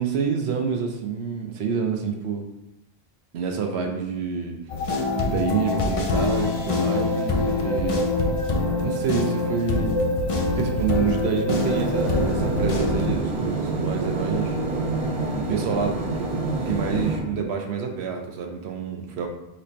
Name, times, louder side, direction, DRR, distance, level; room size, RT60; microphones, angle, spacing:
voice 1, 0.0-2.4 3.3-4.6 5.1-8.0 8.8-10.0 10.5-14.6 15.3-19.3, right 6 dB, 75° right, 3 dB, 0.9 m, -28 dB
sound 1, 4.7-13.2, left 2 dB, 45° left, 0.5 m, -24 dB
sound 2, 11.5-17.2, right 2 dB, 40° right, 0.6 m, -27 dB
4.2 x 2.6 x 4.3 m, 0.87 s
omnidirectional pair, 1.1 m